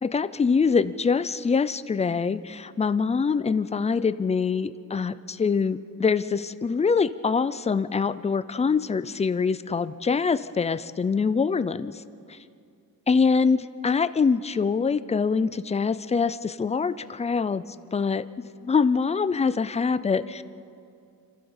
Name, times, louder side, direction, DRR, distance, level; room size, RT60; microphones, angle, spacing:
voice 1, 0.0-11.9 13.1-17.6 17.9-18.3 18.6-20.4, left 5 dB, 20° left, 14 dB, 0.4 m, -24 dB
27.0 x 15.0 x 7.1 m, 2.5 s
wide cardioid pair, 170°, 35 cm